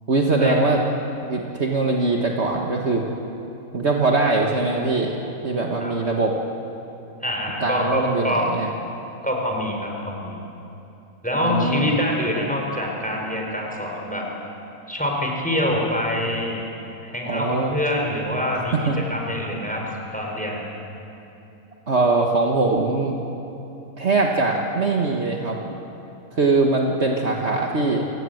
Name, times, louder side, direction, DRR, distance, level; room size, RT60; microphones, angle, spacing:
voice 1, 0.1-0.8 1.3-3.0 3.7-5.2 5.4-6.4 7.6-8.7 11.4-12.0 17.2-17.7 18.7-19.0 21.9-23.2 24.0-25.6 26.3-28.1, right 3 dB, 45° right, 0 dB, 1.8 m, -21 dB
voice 2, 7.2-8.5 9.2-10.4 11.2-14.3 14.9-16.6 17.0-18.8 19.1-20.7, left 1 dB, 5° left, 0 dB, 4.1 m, -25 dB
29.5 x 17.0 x 7.8 m, 2.9 s
omnidirectional pair, 1.6 m